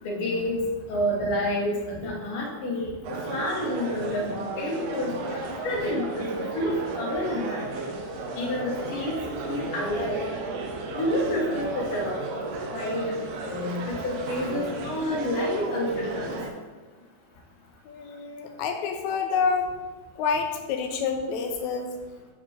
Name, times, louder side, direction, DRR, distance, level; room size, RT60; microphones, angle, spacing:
voice 1, 0.0-2.9 3.3-4.3 4.6-6.3 6.5-7.7 8.4-9.2 9.5-10.3 10.9-13.2 13.4-16.4, left 1 dB, 55° left, -2 dB, 1.9 m, -29 dB
sound 1, 3.0-16.5, right 3 dB, 75° right, 2.0 m, -34 dB
voice 2, 17.9-19.7 20.2-21.9, left 5 dB, 80° left, 5 dB, 1.7 m, -28 dB
6.2 x 4.4 x 4.3 m, 1.3 s
omnidirectional pair, 3.7 m